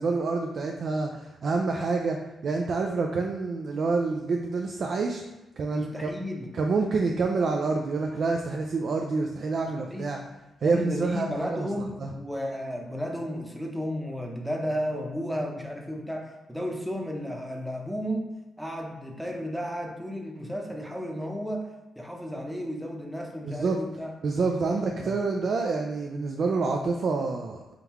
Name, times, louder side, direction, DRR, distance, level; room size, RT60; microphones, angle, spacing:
voice 1, 0.0-5.2 5.6-6.1 6.5-10.2 10.6-11.7 12.0-12.1 23.5-23.8 24.2-27.7, right 4 dB, 60° right, 2 dB, 0.3 m, -27 dB
voice 2, 5.7-6.5 9.8-10.1 10.6-18.3 18.6-21.7 22.0-24.1 24.7-25.2, equal, 5° right, 1 dB, 0.7 m, -33 dB
3.7 x 3.4 x 2.9 m, 1.0 s
cardioid pair, 90°, 0 cm